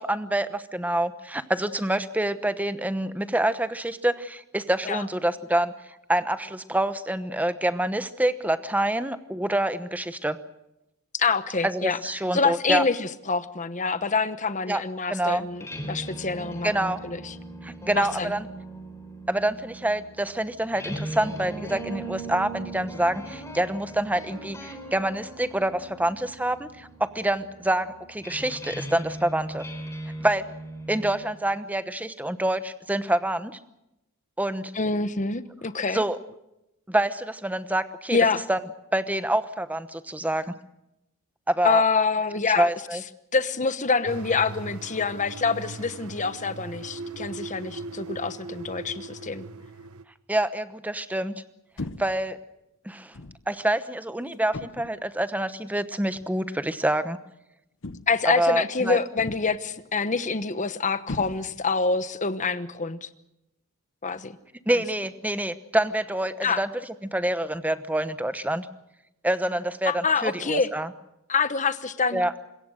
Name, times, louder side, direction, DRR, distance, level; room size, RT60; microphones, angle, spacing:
voice 1, 0.0-5.7 6.1-10.4 11.6-12.8 14.7-14.8 15.1-15.5 16.6-17.0 17.6-18.5 19.3-29.6 30.2-30.5 30.9-33.6 34.4-34.7 35.9-36.2 36.9-38.2 38.5-38.6 38.9-40.5 41.5-41.8 42.6-43.0 50.3-51.4 52.0-52.4 52.8-53.1 53.5-57.2 58.4-59.0 64.7-66.7 67.1-68.7 69.2-70.9 72.1-72.3, right 1 dB, 5° right, 12 dB, 1.0 m, -26 dB
voice 2, 11.1-12.0 12.3-17.3 17.9-18.3 34.7-36.0 38.1-38.4 41.6-42.7 43.3-49.4 58.1-63.1 64.0-64.4 66.4-66.6 69.8-70.7 71.3-72.2, left 4 dB, 35° left, 12 dB, 1.1 m, -26 dB
sound 1, 15.4-31.1, right 2 dB, 15° left, 3.8 m, -39 dB
sound 2, 44.1-50.0, right 3 dB, 75° right, 1.2 m, -39 dB
sound 3, 51.8-52.3 53.1-53.5 54.5-55.0 56.1-56.3 57.8-58.3 59.2-59.7 61.1-61.8, left 2 dB, 55° left, 1.0 m, -38 dB
26.0 x 22.0 x 6.4 m, 0.88 s
head